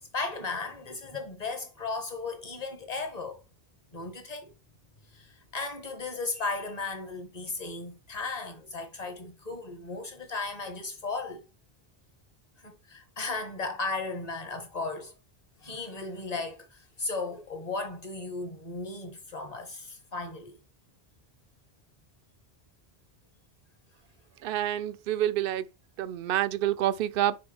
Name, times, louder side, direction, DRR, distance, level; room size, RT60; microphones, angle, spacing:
voice 1, 0.1-3.4 3.9-4.5 5.1-11.4 12.6-15.1 15.6-20.6, left 3 dB, 40° left, 1.5 m, -36 dB
voice 2, 24.4-25.7 26.0-27.4, right 12 dB, 65° right, 0.7 m, -28 dB
6.7 x 4.3 x 3.4 m
omnidirectional pair, 1.1 m